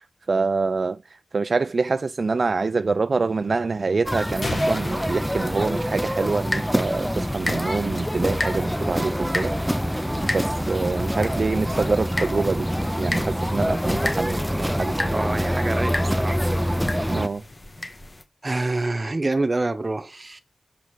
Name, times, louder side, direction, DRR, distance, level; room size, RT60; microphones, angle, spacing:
voice 1, 0.0-9.5 10.2-12.7 13.0-15.0 17.1-17.4, right 4 dB, 50° right, 0.3 m, -26 dB
sound 1, 4.0-17.3, equal, ahead, 0.5 m, -25 dB
sound 2, 4.4-6.3, left 2 dB, 50° left, 2.0 m, -34 dB
sound 3, 6.3-18.2, left 2 dB, 30° left, 1.1 m, -35 dB
voice 2, 15.0-16.4 16.9-17.2 18.4-20.4, right 2 dB, 30° right, 1.1 m, -27 dB
6.8 x 5.0 x 6.1 m
wide cardioid pair, 125°, 0 cm